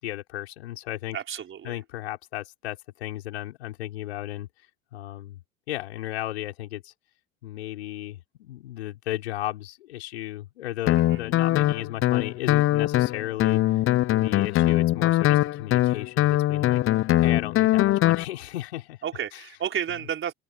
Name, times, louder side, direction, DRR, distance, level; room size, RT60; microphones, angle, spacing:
voice 1, 0.0-1.2 1.6-4.5 4.9-5.4 5.7-6.9 7.4-13.6 14.1-16.8 17.2-19.0, left 15 dB, 75° left, 6.2 m, -34 dB
voice 2, 1.1-1.8 11.0-11.2 19.0-20.3, right 9 dB, 40° right, 4.8 m, -32 dB
Guitar, 10.9-18.2, left 15 dB, 40° left, 0.7 m, -22 dB
open air
hypercardioid pair, 70°, 32 cm